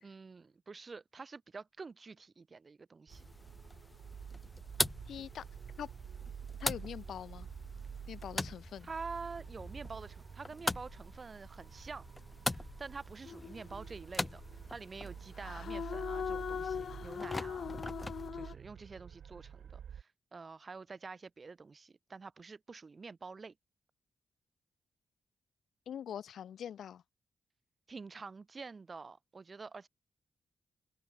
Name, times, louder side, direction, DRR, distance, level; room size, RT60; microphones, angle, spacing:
voice 1, 0.0-3.2 8.8-12.1 12.5-14.4 14.7-17.7 18.3-23.5 27.9-29.9, right 4 dB, 35° right, 1.0 m, -47 dB
sound 1, 3.1-18.3, left 2 dB, 15° left, 0.6 m, -42 dB
sound 2, 3.1-20.0, right 8 dB, 75° right, 0.9 m, -49 dB
voice 2, 5.1-5.5 5.8-5.9 6.6-7.5 8.1-8.9 25.9-27.0, left 9 dB, 90° left, 3.5 m, -43 dB
sound 3, 13.2-13.9 15.4-18.5, left 7 dB, 65° left, 2.6 m, -40 dB
open air
wide cardioid pair, 135°, 0 cm